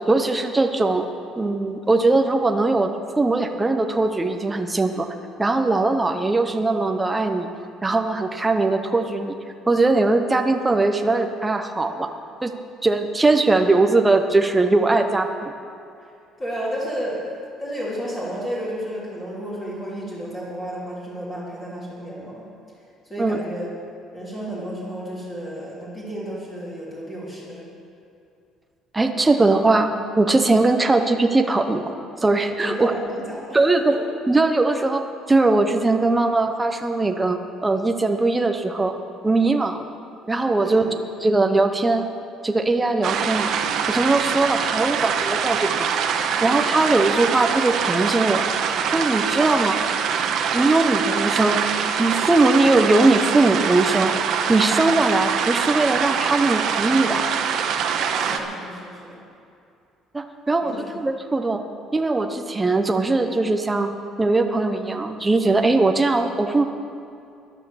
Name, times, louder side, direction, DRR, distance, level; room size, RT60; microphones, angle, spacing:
voice 1, 0.1-1.1 1.4-2.9 3.2-5.1 5.4-7.5 7.8-9.3 9.7-12.1 12.4-12.5 12.8-15.5 23.2-23.4 28.9-32.9 33.5-34.0 34.3-39.0 39.2-39.9 40.3-40.9 41.2-42.0 42.4-43.5 43.9-45.9 46.4-48.4 48.9-49.8 50.5-51.6 52.0-54.1 54.5-57.3 60.1-61.6 61.9-66.7, right 2 dB, 10° right, 5 dB, 0.6 m, -20 dB
voice 2, 16.4-17.3 17.6-22.5 23.1-23.7 24.1-27.6 32.6-33.6 33.9-34.0 40.6-40.9 58.1-59.2 60.6-60.8, equal, 15° left, -7 dB, 3.2 m, -32 dB
sound 1, 43.0-58.4, right 7 dB, 50° right, 1.0 m, -24 dB
13.0 x 11.0 x 7.0 m, 2.5 s
cardioid pair, 170°, 0 cm